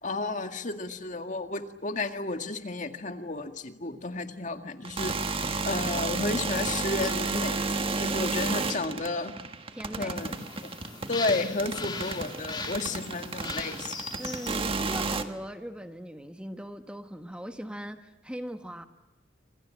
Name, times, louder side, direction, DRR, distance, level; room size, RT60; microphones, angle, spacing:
voice 1, 0.0-7.6 8.0-9.3 10.0-10.7 11.1-13.9, left 2 dB, 45° left, 7 dB, 2.0 m, -32 dB
sound 1, 4.8-15.2, right 3 dB, 30° right, 1.6 m, -32 dB
voice 2, 9.7-10.2 14.2-18.9, equal, 5° right, 7 dB, 1.2 m, -40 dB
sound 2, 10.2-15.2, left 4 dB, 25° left, 2.9 m, -40 dB
28.5 x 26.0 x 7.6 m, 1.1 s
head